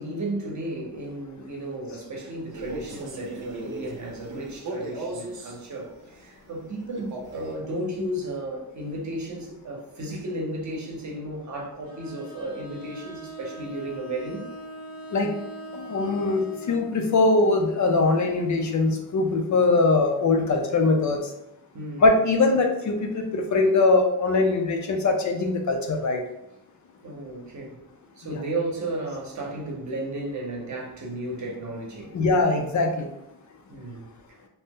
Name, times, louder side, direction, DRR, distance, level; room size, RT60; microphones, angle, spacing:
voice 1, 0.0-14.5 21.7-22.0 27.0-27.8 28.2-32.2 33.7-34.1, right 1 dB, 50° right, -1 dB, 0.8 m, -34 dB
Male speech man speaking, 2.5-5.6 6.9-7.6, right 2 dB, 90° right, 0.6 m, -37 dB
Bowed string instrument, 11.9-16.8, right 1 dB, 85° left, 1.4 m, -41 dB
voice 2, 15.7-21.2 22.0-26.2 32.1-33.1, left 3 dB, 55° left, 3 dB, 0.5 m, -22 dB
2.7 x 2.0 x 3.5 m, 0.82 s
wide cardioid pair, 145°, 36 cm